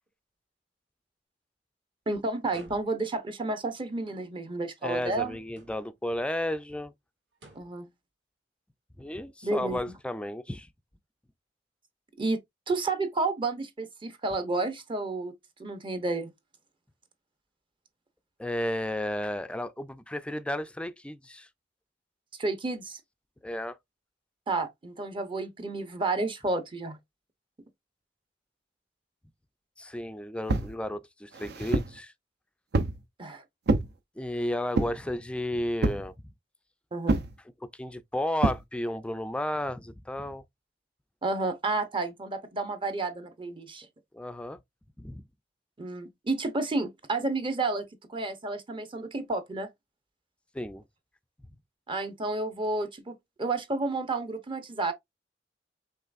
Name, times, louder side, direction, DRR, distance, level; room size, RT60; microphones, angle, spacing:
voice 1, 2.1-5.4 7.5-7.9 9.4-9.8 12.2-12.4 12.7-15.3 15.6-16.3 22.4-23.0 24.5-27.0 33.2-33.4 36.9-37.2 41.2-43.9 45.8-49.7 51.9-54.9, right 3 dB, 30° right, 0.7 m, -31 dB
sound 1, 2.4-3.3 5.4-6.1 7.3-7.9, right 2 dB, 80° right, 2.1 m, -54 dB
voice 2, 4.8-6.9 9.0-10.7 18.4-21.5 23.4-23.8 29.8-32.1 34.2-36.1 37.7-40.4 44.1-44.6 45.0-45.2 50.5-50.8, left 1 dB, 5° left, 0.4 m, -33 dB
sound 2, 30.5-30.8 31.3-32.0 32.7-33.0 33.7-33.9 34.8-35.1 35.8-36.1 37.1-37.3 38.4-38.6, right 2 dB, 65° right, 0.6 m, -27 dB
5.5 x 3.3 x 2.4 m
head